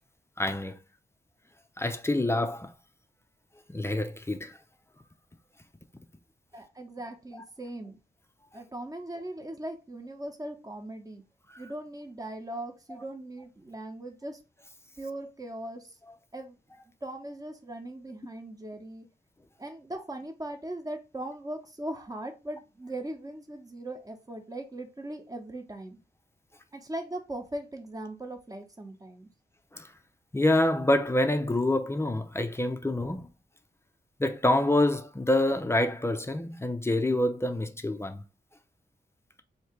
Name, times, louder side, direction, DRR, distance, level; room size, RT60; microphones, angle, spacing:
voice 1, 0.4-0.8 1.8-2.7 3.7-4.6 11.5-11.6 29.7-29.9 30.3-33.3 34.2-38.2, left 1 dB, 15° left, 0.5 m, -26 dB
voice 2, 6.5-8.0 8.5-11.2 11.6-14.4 15.0-15.9 16.3-16.6 17.0-19.1 19.6-26.0 26.7-29.3, right 1 dB, 20° right, 1.0 m, -39 dB
3.1 x 2.8 x 4.5 m
cardioid pair, 80°, 17 cm